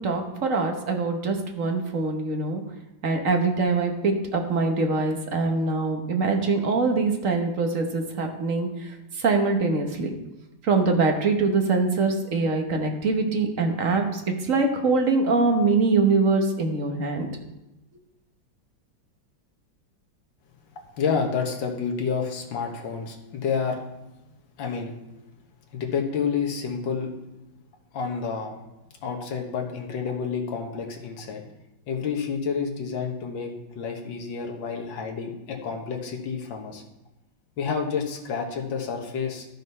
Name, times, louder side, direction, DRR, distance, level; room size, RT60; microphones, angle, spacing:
voice 1, 0.0-2.6 3.0-10.1 10.6-14.2 14.5-17.3, right 3 dB, 50° right, 4 dB, 1.3 m, -23 dB
voice 2, 21.0-23.8 24.6-25.0 25.7-27.1 27.9-28.6 29.0-31.4 31.9-36.8 37.6-39.5, left 6 dB, 75° left, 1 dB, 2.0 m, -29 dB
12.5 x 6.4 x 5.5 m, 0.94 s
omnidirectional pair, 2.1 m